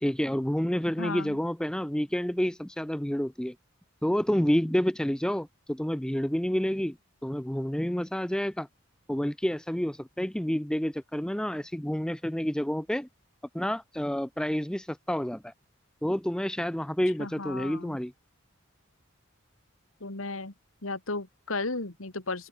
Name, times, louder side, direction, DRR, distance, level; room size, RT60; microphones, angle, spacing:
voice 1, 0.0-3.6 4.0-7.0 7.2-8.7 9.1-13.1 13.5-15.5 16.0-18.1, equal, 5° left, 0.5 m, -29 dB
voice 2, 1.0-1.4 17.2-18.0 20.0-20.5 20.8-22.5, left 3 dB, 80° left, 2.7 m, -34 dB
open air
head